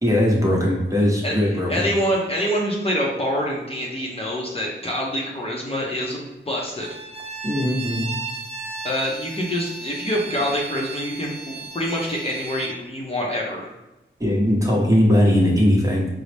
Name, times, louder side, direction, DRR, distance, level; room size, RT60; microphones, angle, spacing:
voice 1, 0.0-1.8 7.4-8.2 14.2-16.1, equal, 15° right, -3 dB, 0.9 m, -19 dB
voice 2, 1.2-6.9 8.8-13.7, equal, 30° left, -3 dB, 0.7 m, -26 dB
Bowed string instrument, 6.7-12.8, right 4 dB, 30° right, 0.4 m, -35 dB
4.0 x 2.0 x 3.3 m, 0.99 s
wide cardioid pair, 60°, 20 cm